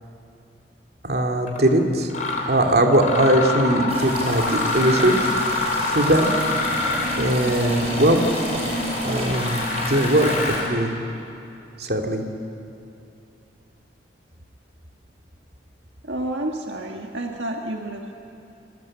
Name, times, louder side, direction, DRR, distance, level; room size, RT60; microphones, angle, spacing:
voice 1, 1.0-2.1 2.5-5.3 5.9-6.3 7.2-8.2 9.0-9.6 9.9-10.9 11.8-12.2, right 1 dB, 55° right, 2 dB, 2.5 m, -20 dB
Mechanisms, 1.5-1.6 2.1-2.5 2.9-10.7, left 2 dB, 45° left, 4.1 m, -26 dB
sound 1, 3.9-10.6, right 1 dB, 35° right, 6.4 m, -33 dB
voice 2, 16.0-18.1, right 1 dB, 80° right, 2 dB, 1.7 m, -30 dB
28.0 x 21.5 x 8.7 m, 2.7 s
head